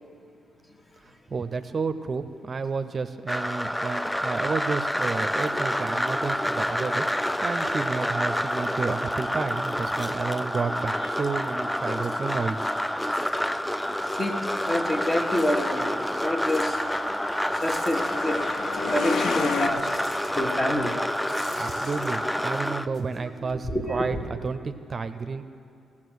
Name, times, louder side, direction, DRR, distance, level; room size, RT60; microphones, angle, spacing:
voice 1, 1.0-12.7 21.6-24.2 24.4-25.4, right 4 dB, 45° right, 9 dB, 0.5 m, -31 dB
sound 1, 3.3-22.9, equal, 5° left, 0.3 m, -28 dB
sound 2, 11.8-18.8 19.0-23.7, left 2 dB, 50° left, 1.4 m, -47 dB
voice 2, 13.7-16.8 17.5-19.9 20.3-20.9 22.4-23.0 23.4-24.2, left 1 dB, 30° left, 3 dB, 1.5 m, -29 dB
Truck, 15.9-19.7, left 5 dB, 65° left, 0.5 m, -32 dB
16.0 x 7.3 x 6.3 m, 2.5 s
supercardioid pair, 55°, 0 cm